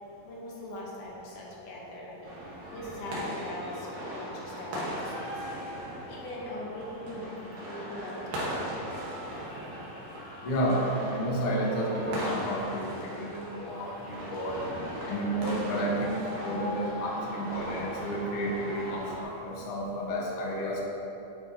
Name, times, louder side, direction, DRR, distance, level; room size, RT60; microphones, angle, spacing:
voice 1, 0.2-5.5 6.1-9.0, left 1 dB, 65° left, -4 dB, 1.8 m, -41 dB
sound 1, 2.2-19.2, equal, 80° right, 2.8 m, -38 dB
voice 2, 10.4-14.6 15.1-20.8, equal, 85° left, -3 dB, 1.2 m, -31 dB
8.6 x 4.5 x 4.0 m, 3.0 s
omnidirectional pair, 3.9 m